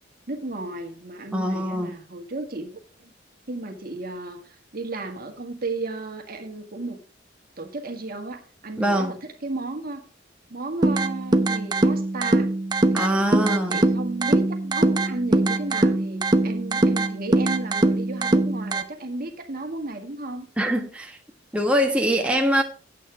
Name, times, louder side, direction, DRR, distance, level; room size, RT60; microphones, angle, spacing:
voice 1, 0.3-3.1 3.5-7.0 7.6-10.1 10.5-12.5 12.9-13.3 13.7-20.5, right 2 dB, 50° right, 5 dB, 1.7 m, -34 dB
voice 2, 1.3-1.9 8.8-9.2 12.9-13.8 20.6-21.2 21.5-22.6, equal, 5° right, 1 dB, 1.2 m, -23 dB
sound 1, 10.8-18.8, right 2 dB, 25° right, 0.8 m, -22 dB
9.3 x 8.4 x 4.5 m, 0.38 s
head